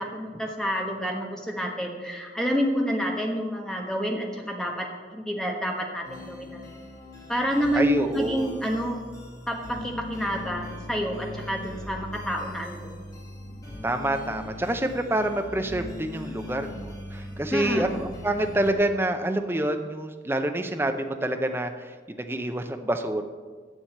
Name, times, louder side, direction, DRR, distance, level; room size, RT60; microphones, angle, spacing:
voice 1, 0.0-6.7 7.3-9.0 9.5-12.9 17.5-17.9, equal, 5° left, 0 dB, 1.1 m, -28 dB
sound 1, 6.0-18.7, left 2 dB, 20° left, 2.0 m, -40 dB
voice 2, 7.7-8.5 13.8-23.2, right 1 dB, 15° right, 6 dB, 0.6 m, -27 dB
7.3 x 7.0 x 7.8 m, 1.5 s
head